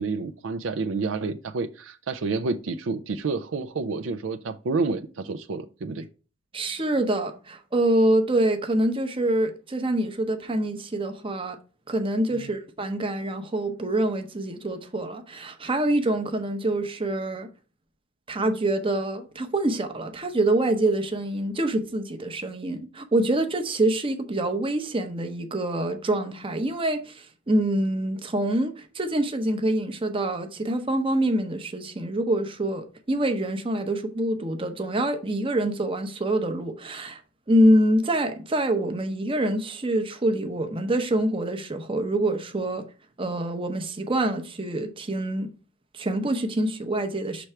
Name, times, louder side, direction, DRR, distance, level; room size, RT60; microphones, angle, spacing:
voice 1, 0.0-6.1 12.3-12.6, right 4 dB, 70° right, 0.5 m, -29 dB
voice 2, 6.5-11.6 11.9-17.5 18.3-37.2 37.5-42.8 43.2-45.5 45.9-47.5, right 1 dB, 25° right, 0.8 m, -25 dB
6.1 x 3.3 x 5.6 m
head